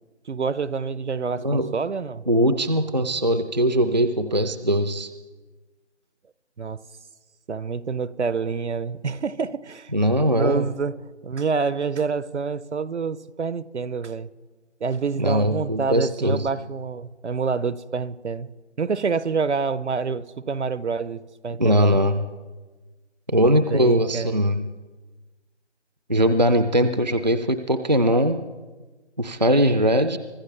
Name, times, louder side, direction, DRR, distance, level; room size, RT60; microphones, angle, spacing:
voice 1, 0.3-2.2 6.6-6.8 7.5-9.9 10.3-11.0 11.2-14.3 14.8-18.5 18.8-22.0 23.7-24.4, right 5 dB, 75° right, 17 dB, 0.8 m, -27 dB
voice 2, 2.3-5.1 9.9-10.7 15.2-16.5 21.6-22.2 23.3-24.6 26.1-28.4 29.2-30.2, equal, 40° right, 10 dB, 0.4 m, -20 dB
24.5 x 14.0 x 3.3 m, 1.3 s
figure-of-eight pair, 175°, 35 cm